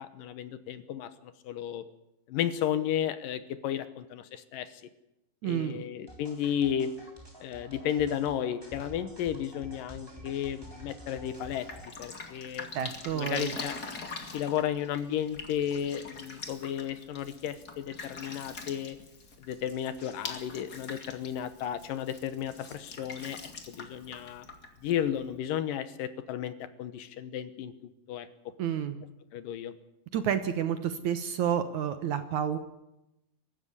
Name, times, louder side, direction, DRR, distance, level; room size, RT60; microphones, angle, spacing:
voice 1, 0.0-1.8 2.3-4.8 5.4-6.9 7.4-11.7 12.0-12.7 13.1-13.8 14.3-19.0 19.5-24.4 24.8-28.3 29.3-29.7, left 10 dB, 75° left, 13 dB, 2.5 m, -33 dB
voice 2, 5.4-5.8 12.7-13.6 28.6-29.0 30.1-32.6, right 9 dB, 65° right, 10 dB, 2.1 m, -30 dB
sound 1, 6.1-11.9, right 1 dB, 5° right, 3.8 m, -48 dB
Drip, 11.3-25.4, left 4 dB, 30° left, 2.3 m, -44 dB
23.5 x 13.0 x 9.7 m, 0.88 s
omnidirectional pair, 4.3 m